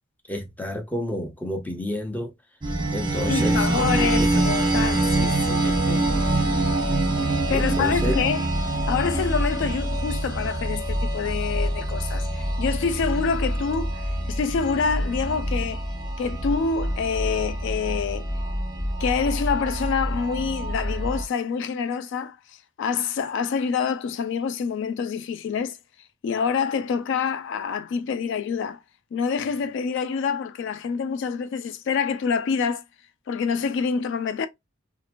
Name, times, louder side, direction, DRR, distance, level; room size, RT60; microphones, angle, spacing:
voice 1, 0.3-2.3 2.9-3.9 4.2-4.3 7.5-8.1, left 1 dB, 10° left, 0.6 m, -30 dB
sound 1, 2.6-21.2, right 1 dB, 20° right, 0.9 m, -25 dB
voice 2, 3.3-6.2 7.3-15.9 16.2-18.3 19.0-25.8 26.2-28.8 29.1-32.8 33.3-34.5, left 6 dB, 65° left, 0.3 m, -27 dB
2.9 x 2.5 x 2.4 m
head